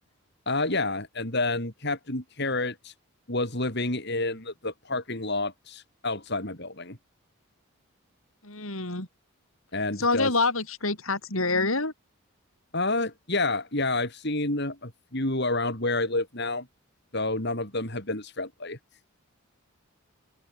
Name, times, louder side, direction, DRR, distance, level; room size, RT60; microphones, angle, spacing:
voice 1, 0.5-2.9 3.3-7.0 9.7-10.3 12.7-16.7 17.1-18.8, left 2 dB, 50° left, 5.2 m, -29 dB
voice 2, 8.4-9.1 10.0-11.9, left 3 dB, 75° left, 7.0 m, -26 dB
open air
head